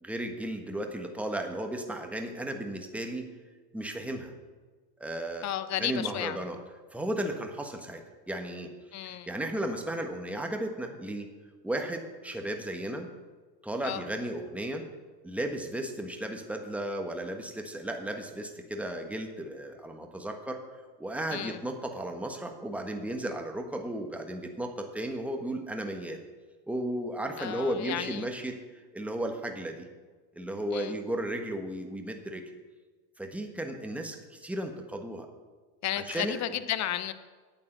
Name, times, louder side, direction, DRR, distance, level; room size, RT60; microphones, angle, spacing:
voice 1, 0.0-3.2 3.7-4.3 5.0-5.5 5.8-6.6 6.9-8.7 9.0-11.3 11.6-13.1 13.6-14.8 15.2-20.6 21.0-26.2 26.7-29.9 30.3-32.4 33.2-35.3 36.0-36.4, right 1 dB, 5° right, 4 dB, 1.3 m, -34 dB
voice 2, 5.4-6.4 8.9-9.3 13.8-14.0 21.3-21.6 27.4-28.3 30.7-30.9 35.8-37.1, left 12 dB, 35° left, 13 dB, 0.8 m, -33 dB
9.0 x 8.6 x 6.7 m, 1.4 s
supercardioid pair, 105°, 50 cm